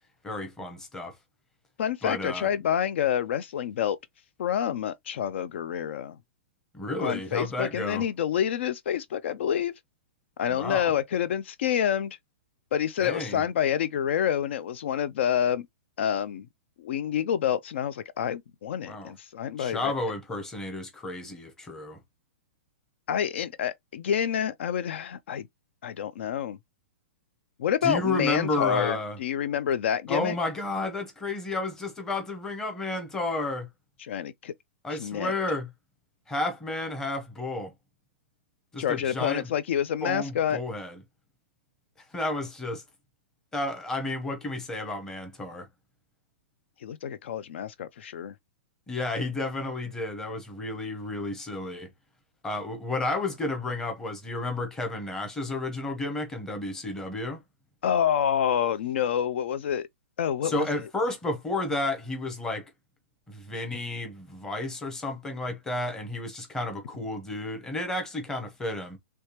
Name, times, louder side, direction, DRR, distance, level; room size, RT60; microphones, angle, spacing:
voice 1, 0.2-1.1 2.0-2.5 6.7-8.0 10.5-10.9 13.0-13.4 18.9-19.1 19.6-22.0 27.8-29.2 30.1-33.7 34.8-35.7 36.3-37.7 38.7-39.5 40.0-41.0 42.1-42.8 43.5-45.7 48.9-51.9 52.4-57.4 60.4-62.7 63.3-69.0, left 2 dB, 5° left, 0.8 m, -32 dB
voice 2, 1.8-4.0 4.4-6.2 7.0-9.7 10.4-12.2 12.7-15.7 16.0-16.5 16.8-19.9 23.1-25.5 25.8-26.6 27.6-30.4 34.0-34.5 34.9-35.3 38.8-40.6 46.8-48.3 57.8-59.9 60.2-60.7, left 9 dB, 60° left, 0.4 m, -28 dB
3.4 x 3.2 x 2.9 m
hypercardioid pair, 165°, 7 cm